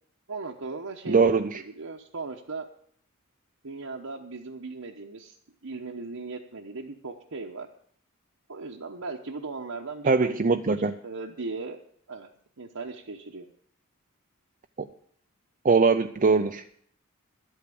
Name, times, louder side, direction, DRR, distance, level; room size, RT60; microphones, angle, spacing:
voice 1, 0.3-2.7 3.6-5.4 5.6-7.7 8.5-11.8 12.1-12.3 12.6-13.5, right 3 dB, 75° right, 0 dB, 1.1 m, -38 dB
voice 2, 1.1-1.6 10.0-10.9 15.6-16.6, right 4 dB, 40° right, 6 dB, 0.5 m, -21 dB
11.5 x 8.5 x 6.9 m, 0.62 s
head